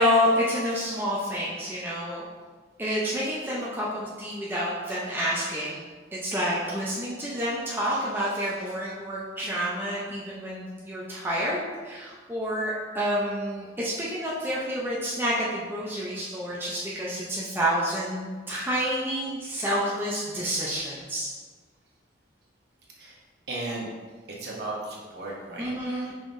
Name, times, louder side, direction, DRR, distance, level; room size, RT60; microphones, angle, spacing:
voice 1, 0.0-2.3 2.8-5.9 6.1-21.3 25.6-26.1, equal, 10° right, -7 dB, 0.5 m, -28 dB
voice 2, 23.5-23.9 24.4-25.7 26.0-26.1, right 2 dB, 55° right, -3 dB, 0.9 m, -35 dB
5.1 x 3.8 x 2.6 m, 1.4 s
head